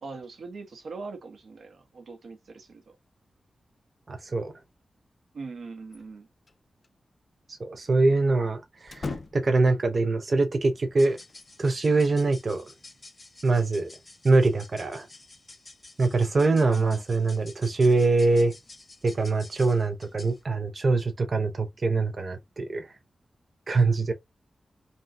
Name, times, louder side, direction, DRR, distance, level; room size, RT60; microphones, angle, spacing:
voice 1, 0.0-3.0 5.3-6.3 16.5-17.0, right 4 dB, 70° right, 1.0 m, -41 dB
voice 2, 4.1-4.6 7.5-11.2 11.6-12.6 13.4-13.9 14.2-15.1 16.0-18.5 19.0-22.9 23.7-24.1, right 3 dB, 40° right, 0.6 m, -24 dB
sound 1, 5.9-6.6 6.8-6.9 8.9-9.7 11.3-12.2, left 3 dB, 40° left, 0.5 m, -39 dB
sound 2, 10.9-20.4, left 2 dB, 25° left, 1.4 m, -50 dB
5.3 x 2.3 x 2.7 m
wide cardioid pair, 165°, 0 cm